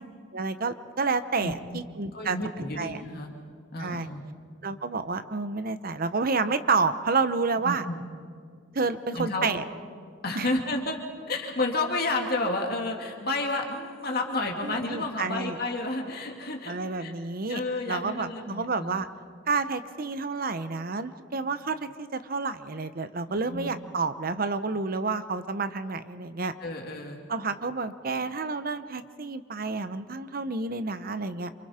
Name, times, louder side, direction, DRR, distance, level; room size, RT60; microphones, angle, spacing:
voice 1, 0.3-2.4 2.8-3.0 3.8-4.1 4.6-7.8 8.7-9.6 10.3-10.5 14.6-15.6 16.7-17.6 17.9-19.1 19.5-26.5 27.3-31.5, right 4 dB, 50° right, 11 dB, 0.9 m, -29 dB
voice 2, 1.4-1.8 2.1-3.3 3.7-4.2 7.6-8.0 9.2-9.5 10.2-11.0 11.3-17.1 17.5-19.0 23.3-23.8 26.6-27.2, left 2 dB, 55° left, 1 dB, 2.3 m, -31 dB
28.5 x 27.0 x 4.4 m, 2.1 s
head